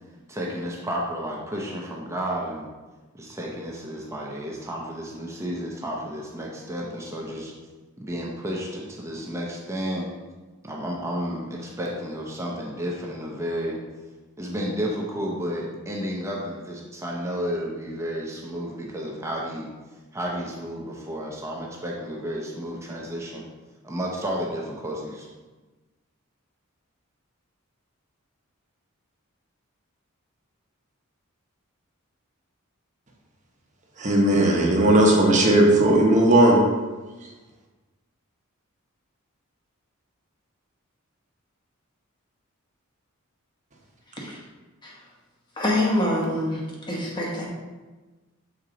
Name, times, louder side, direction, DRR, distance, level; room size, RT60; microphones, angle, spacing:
voice 1, 0.3-2.7 3.1-7.5 8.0-10.1 10.6-13.8 14.4-19.7 20.1-23.4 23.8-25.3, equal, 15° right, -2 dB, 0.7 m, -32 dB
voice 2, 34.0-36.6, right 1 dB, 35° right, -1 dB, 1.0 m, -17 dB
voice 3, 45.6-47.5, left 1 dB, 20° left, -3 dB, 1.3 m, -26 dB
6.5 x 4.4 x 3.9 m, 1.2 s
head